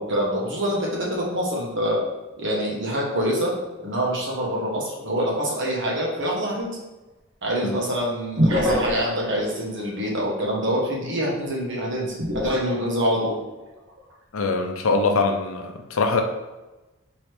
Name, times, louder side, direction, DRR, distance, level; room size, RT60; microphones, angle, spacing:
voice 1, 0.0-2.0 2.4-3.5 3.8-6.8 7.4-13.3, equal, 60° right, -3 dB, 1.2 m, -25 dB
sound 1, 5.5-5.6 8.4-9.3 12.2-13.3 13.9-14.1, equal, 75° right, 0.8 m, -24 dB
voice 2, 14.3-16.2, left 3 dB, 70° left, 4 dB, 0.5 m, -23 dB
4.5 x 3.1 x 3.3 m, 1.1 s
head